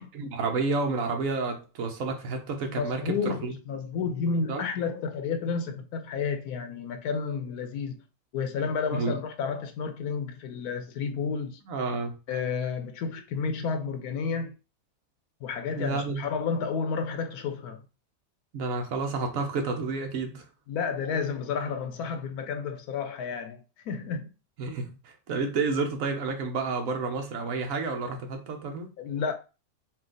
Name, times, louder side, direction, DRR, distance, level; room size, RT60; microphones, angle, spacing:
voice 1, 0.0-3.5 4.5-4.6 8.9-9.2 11.7-12.2 15.7-16.2 18.5-20.4 24.6-28.9, right 4 dB, 65° right, 1.3 m, -30 dB
voice 2, 2.7-8.0 8.3-11.6 12.3-14.5 15.4-17.8 20.7-24.3 29.0-29.3, left 5 dB, 80° left, 1.1 m, -31 dB
4.3 x 2.4 x 3.8 m
omnidirectional pair, 1.6 m